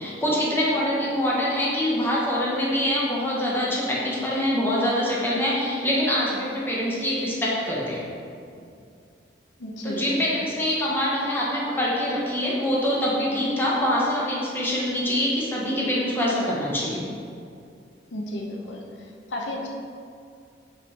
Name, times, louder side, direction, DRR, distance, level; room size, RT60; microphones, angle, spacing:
voice 1, 0.0-8.0 9.8-17.0, equal, 10° left, -6 dB, 1.2 m, -24 dB
voice 2, 9.6-10.5 18.1-18.8 19.3-19.7, left 1 dB, 90° left, 0 dB, 0.9 m, -33 dB
5.7 x 5.3 x 4.3 m, 2.4 s
head